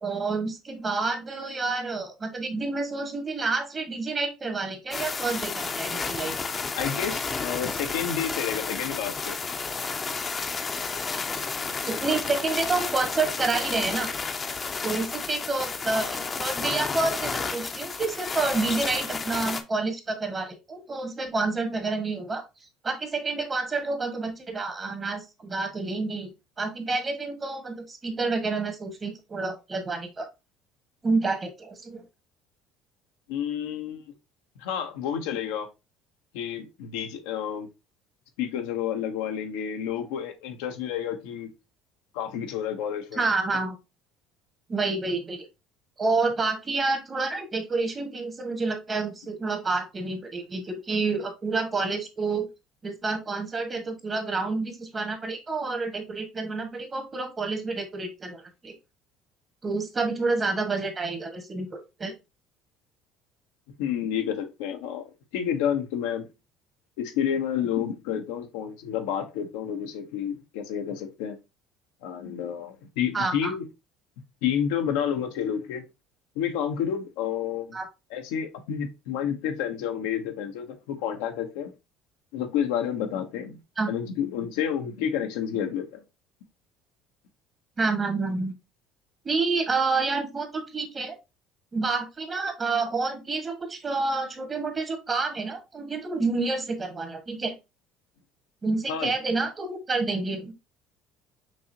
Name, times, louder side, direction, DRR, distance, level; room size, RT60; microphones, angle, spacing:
voice 1, 0.0-6.3 11.9-14.1 14.8-22.4 22.8-26.3 26.6-30.3 31.0-32.0 43.1-43.7 44.7-45.5 46.0-52.5 52.8-58.7 59.6-62.1 73.1-73.5 77.7-77.8 83.8-83.9 87.8-88.5 89.2-91.1 91.7-97.5 98.6-100.5, right 3 dB, 30° right, 1.4 m, -29 dB
sound 1, 4.9-19.6, left 4 dB, 30° left, 0.7 m, -31 dB
voice 2, 6.8-9.4 33.3-34.1 34.6-35.7 36.3-37.7 38.4-41.5 42.1-43.3 63.8-65.1 65.3-66.3 67.0-71.4 72.0-73.7 74.4-75.9 76.4-77.8 78.1-81.7 82.3-83.6 83.9-86.0 98.9-99.1, left 9 dB, 80° left, 0.8 m, -30 dB
6.1 x 2.8 x 2.8 m
hypercardioid pair, 75°, 0 cm